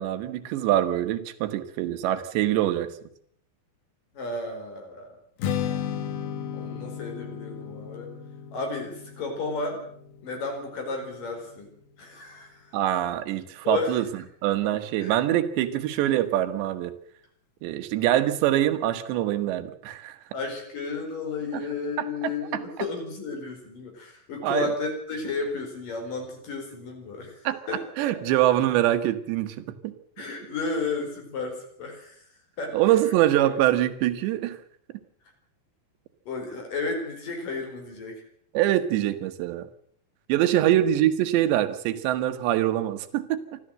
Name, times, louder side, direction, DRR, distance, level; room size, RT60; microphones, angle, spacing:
voice 1, 0.0-2.9 12.7-14.1 14.4-17.0 17.6-20.2 22.0-22.3 24.4-24.7 27.5-27.6 28.0-29.9 32.7-34.6 38.6-39.7 40.3-43.6, right 13 dB, 85° right, 10 dB, 3.6 m, -24 dB
voice 2, 4.1-5.1 6.5-8.1 8.5-9.8 10.2-11.7 12.0-12.7 13.6-14.0 14.7-15.1 20.3-27.4 27.7-28.1 30.2-32.2 32.6-33.1 33.4-33.6 36.3-38.2 40.5-40.7, left 3 dB, 50° left, 3 dB, 5.8 m, -33 dB
Strum, 5.4-11.7, left 8 dB, 65° left, 2.8 m, -35 dB
25.5 x 14.0 x 7.7 m, 0.64 s
omnidirectional pair, 5.0 m